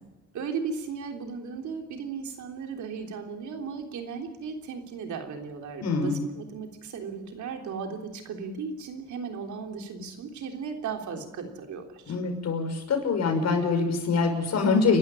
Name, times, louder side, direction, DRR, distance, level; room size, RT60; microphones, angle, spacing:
voice 1, 0.3-12.2, right 5 dB, 75° right, 3 dB, 3.5 m, -36 dB
voice 2, 5.8-6.2 12.1-15.0, left 4 dB, 60° left, 5 dB, 5.7 m, -24 dB
29.0 x 12.5 x 9.9 m, 1.1 s
cardioid pair, 90°, 30 cm